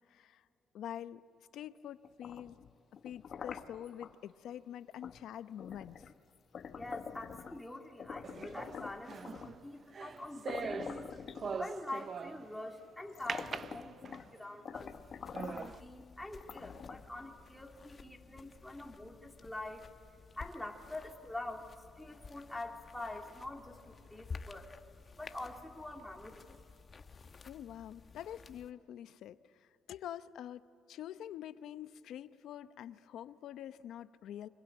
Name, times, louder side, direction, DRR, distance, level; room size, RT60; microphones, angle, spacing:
voice 1, 0.1-0.4 0.7-1.2 1.5-2.6 3.0-6.1 27.5-34.5, left 10 dB, 80° left, 13 dB, 0.8 m, -46 dB
sound 1, 2.0-4.1 5.0-5.2 5.6-7.7 8.0-9.6 10.2-10.3 10.5-12.0 12.6-12.7 13.1-14.3 14.6-15.8 16.4-17.2, left 7 dB, 55° left, 1.2 m, -46 dB
voice 2, 6.7-11.1 11.6-14.9 15.4-19.8 20.3-24.7 25.2-26.5, left 2 dB, 5° left, 0 dB, 2.7 m, -45 dB
sound 2, 8.2-12.6 13.3-14.4 14.9-15.0 15.3-15.8, right 6 dB, 45° right, 0.6 m, -42 dB
sound 3, 14.7-28.7, left 4 dB, 40° left, 1.1 m, -53 dB
25.0 x 22.5 x 9.1 m, 2.8 s
cardioid pair, 90°, 0 cm